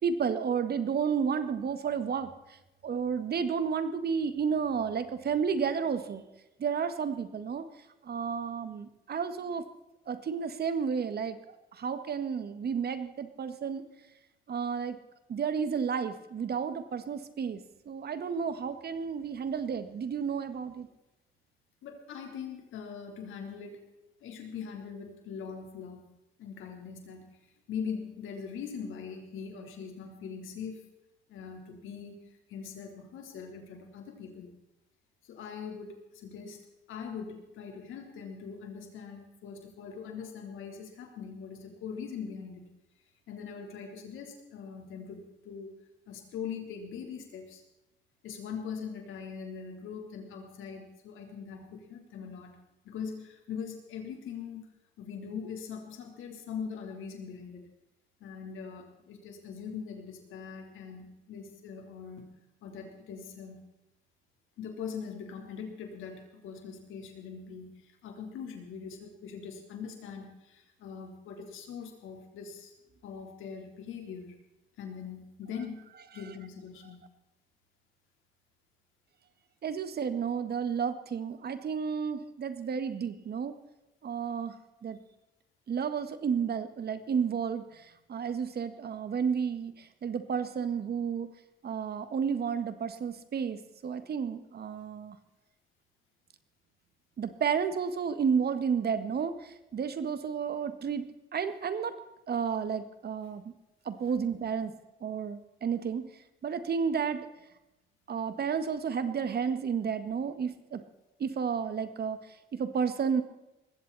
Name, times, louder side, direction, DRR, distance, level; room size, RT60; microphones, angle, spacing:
voice 1, 0.0-2.3 2.8-6.2 6.6-7.7 8.0-9.6 10.1-11.4 11.8-13.8 14.5-15.0 15.3-17.6 17.9-20.9 79.6-83.5 84.0-84.5 84.8-85.0 85.7-87.6 88.1-91.3 91.6-95.2 97.2-101.1 101.3-102.0 102.3-103.4 103.9-104.7 105.0-106.1 106.4-107.3 108.1-110.8 111.2-112.2 112.5-113.2, right 6 dB, 55° right, 10 dB, 1.8 m, -31 dB
voice 2, 21.8-23.8 24.2-26.1 26.4-27.4 27.7-30.9 31.3-32.2 32.5-34.5 35.3-36.6 36.9-42.7 43.3-45.7 46.1-47.6 48.2-52.6 52.8-54.7 55.0-57.7 58.2-62.3 62.6-63.7 64.6-72.7 73.0-74.3 74.8-75.9 76.1-77.0, left 6 dB, 85° left, 3 dB, 3.7 m, -41 dB
20.0 x 16.0 x 4.2 m, 0.98 s
cardioid pair, 90°, 20 cm